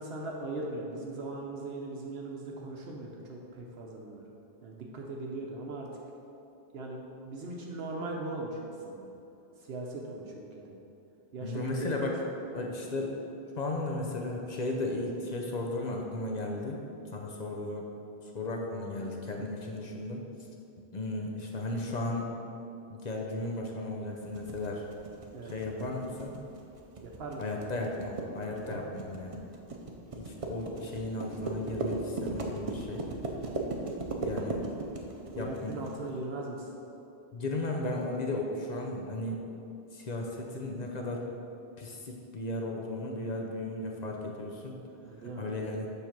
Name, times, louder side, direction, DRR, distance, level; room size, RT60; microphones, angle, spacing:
voice 1, 0.0-4.2 4.6-5.9 6.7-9.1 9.6-10.8 11.3-12.1 19.4-19.5 25.3-25.5 27.0-27.6 28.5-28.8 35.3-36.7 45.1-45.7, right 2 dB, 75° right, -1 dB, 0.9 m, -39 dB
voice 2, 11.4-12.1 12.5-13.1 13.6-16.8 17.1-17.9 18.3-20.2 20.9-22.3 22.9-24.8 25.5-26.3 27.4-29.3 30.2-33.0 34.2-34.7 35.4-35.8 37.3-39.4 39.9-41.3 41.8-44.8 45.4-45.9, left 2 dB, 45° left, 0 dB, 0.7 m, -35 dB
sound 1, 24.3-35.9, right 3 dB, 40° right, 0.5 m, -37 dB
6.9 x 3.3 x 5.8 m, 2.7 s
omnidirectional pair, 1.1 m